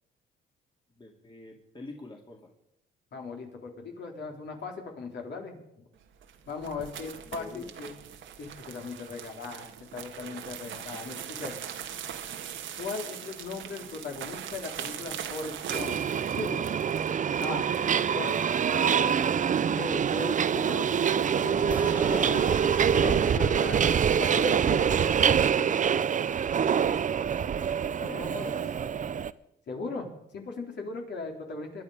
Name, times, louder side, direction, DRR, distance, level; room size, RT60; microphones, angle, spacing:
voice 1, 1.0-2.5 7.3-7.7 21.8-22.4 28.0-28.9, left 2 dB, 25° left, 1 dB, 2.5 m, -44 dB
voice 2, 3.1-5.6 6.5-7.9 8.4-11.5 12.8-16.6 17.4-17.7 18.1-18.4 18.7-19.2 19.8-20.9 21.4-22.5 22.9-23.8 24.2-24.9 25.2-26.1 28.0-28.5 29.7-31.8, left 4 dB, 60° left, 1 dB, 4.0 m, -38 dB
sound 1, 6.1-17.8, right 9 dB, 75° right, 1.5 m, -41 dB
Subway metro underground, 15.7-29.3, right 7 dB, 40° right, 0.6 m, -25 dB
sound 2, 21.7-26.2, right 1 dB, 5° right, 1.6 m, -42 dB
24.0 x 10.5 x 5.0 m, 0.78 s
cardioid pair, 90°, 20 cm